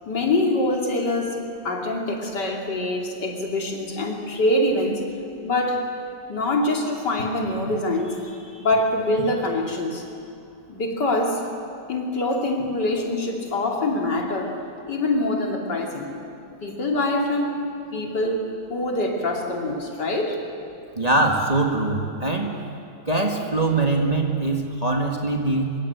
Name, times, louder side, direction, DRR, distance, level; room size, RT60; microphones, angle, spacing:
voice 1, 0.1-1.4 1.6-5.1 5.4-5.9 6.3-10.0 10.7-11.5 11.9-16.2 16.6-20.5, left 1 dB, 70° left, 1 dB, 3.4 m, -25 dB
voice 2, 21.0-22.6 23.1-25.7, right 2 dB, 20° right, 1 dB, 2.0 m, -22 dB
25.0 x 23.0 x 8.3 m, 2.6 s
omnidirectional pair, 1.9 m